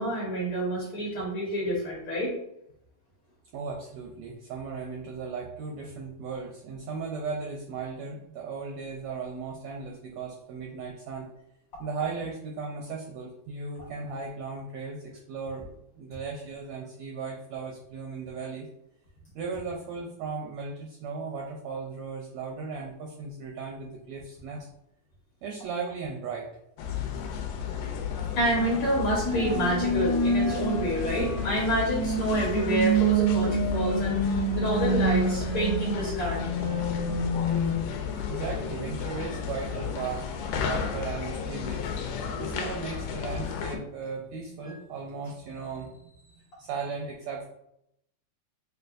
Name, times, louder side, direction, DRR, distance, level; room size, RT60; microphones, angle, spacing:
voice 1, 0.0-2.3 28.3-36.4, equal, 60° left, -6 dB, 1.4 m, -28 dB
voice 2, 3.5-11.3 11.8-15.7 15.9-18.7 19.3-24.7 25.4-26.5 38.3-40.3 40.6-41.9 42.4-47.5, right 4 dB, 80° right, 0 dB, 1.5 m, -36 dB
sound 1, 26.8-43.8, left 6 dB, 85° left, 2.0 m, -33 dB
sound 2, 29.2-37.7, right 2 dB, 35° right, 0.5 m, -27 dB
6.4 x 2.2 x 2.5 m, 0.77 s
omnidirectional pair, 3.5 m